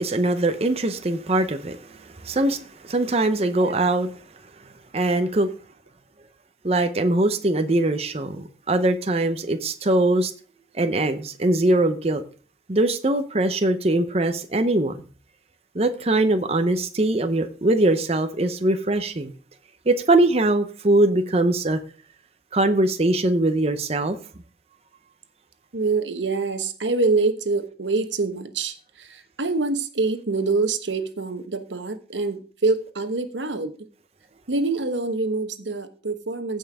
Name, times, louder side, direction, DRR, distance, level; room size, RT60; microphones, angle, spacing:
voice 1, 0.0-4.1 4.9-5.5 6.6-10.3 10.7-12.2 12.7-15.0 15.7-19.3 19.9-21.8 22.5-24.2, right 2 dB, 35° right, 0.8 m, -22 dB
voice 2, 25.7-28.7 29.4-33.7 34.5-36.6, right 3 dB, 85° right, 1.2 m, -25 dB
15.5 x 5.6 x 3.6 m
head